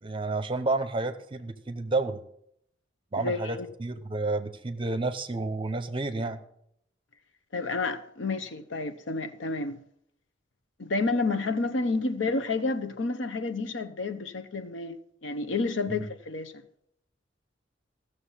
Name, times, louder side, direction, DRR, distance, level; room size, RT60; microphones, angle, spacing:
voice 1, 0.0-2.2 3.1-6.4 15.9-16.0, right 2 dB, 30° right, 0.8 m, -30 dB
voice 2, 3.2-3.7 7.5-9.8 10.8-16.5, left 3 dB, 80° left, 0.9 m, -30 dB
15.5 x 6.8 x 5.7 m
head